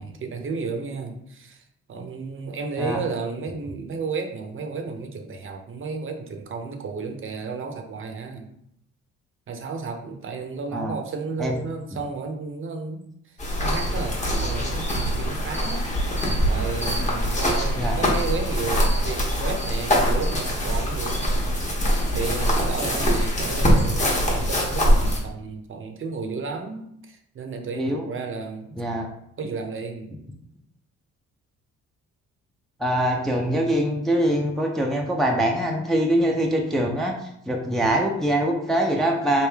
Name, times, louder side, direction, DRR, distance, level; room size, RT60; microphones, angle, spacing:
voice 1, 0.0-8.5 9.5-21.3 22.1-28.8 29.4-30.2, right 4 dB, 45° right, 4 dB, 0.6 m, -33 dB
sound 1, 13.4-25.2, equal, 25° left, 1.1 m, -23 dB
voice 2, 28.8-29.1 32.8-37.2 37.5-39.5, right 1 dB, ahead, 0 dB, 0.4 m, -23 dB
3.3 x 2.6 x 3.4 m, 0.75 s
cardioid pair, 90°, 30 cm